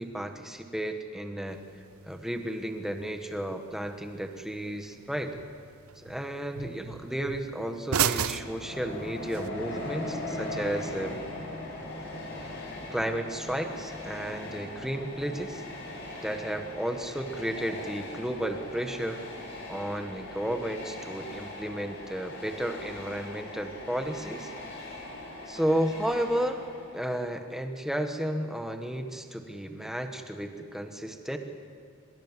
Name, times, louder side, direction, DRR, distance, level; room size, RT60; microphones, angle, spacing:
voice 1, 0.0-1.6 2.1-5.3 6.0-11.2 12.9-15.6 16.2-19.2 19.7-24.5 25.5-26.6 26.9-31.4, right 1 dB, ahead, 6 dB, 1.4 m, -33 dB
sound 1, 1.5-9.5, right 8 dB, 75° right, 0.7 m, -36 dB
Train, 8.2-27.1, left 1 dB, 50° left, 6.6 m, -40 dB
23.5 x 22.0 x 7.5 m, 2.3 s
head